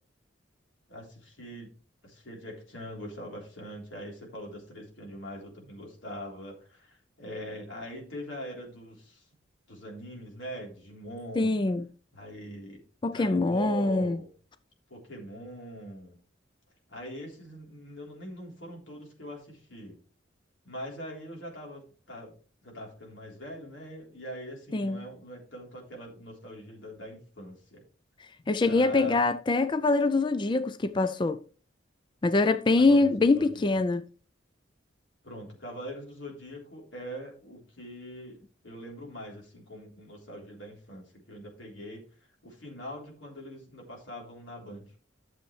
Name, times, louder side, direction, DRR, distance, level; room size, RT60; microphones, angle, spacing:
voice 1, 0.9-1.7 2.0-9.3 9.7-11.6 12.1-12.8 13.1-14.3 14.9-16.2 16.9-20.0 20.6-22.4 22.6-27.8 28.6-29.2 32.8-33.8 35.2-42.0 42.4-44.9, equal, 80° left, 3.6 m, -42 dB
voice 2, 11.4-11.8 13.0-14.2 24.7-25.0 28.2-31.4 32.2-34.0, left 3 dB, 25° left, 0.4 m, -24 dB
12.0 x 7.1 x 3.2 m
head